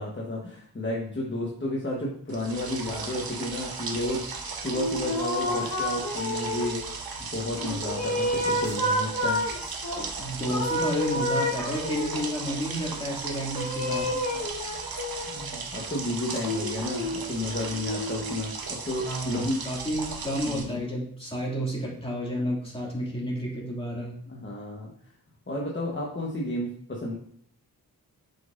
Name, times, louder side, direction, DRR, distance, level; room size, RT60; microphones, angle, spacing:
voice 1, 0.0-6.8 7.3-9.4 14.1-14.4 15.3-19.6 20.4-20.8 24.3-24.9 25.5-27.1, left 1 dB, 30° left, -3 dB, 1.3 m, -32 dB
sound 1, 2.3-20.6, right 4 dB, 75° right, 1.1 m, -36 dB
sound 2, 4.7-6.9 7.6-10.0 10.5-12.3 13.5-15.5 16.3-18.6, left 1 dB, 45° left, 1.6 m, -30 dB
voice 2, 10.0-14.1 19.1-24.2, equal, 15° left, -4 dB, 2.5 m, -31 dB
7.5 x 5.4 x 2.6 m, 0.64 s
wide cardioid pair, 70°, 37 cm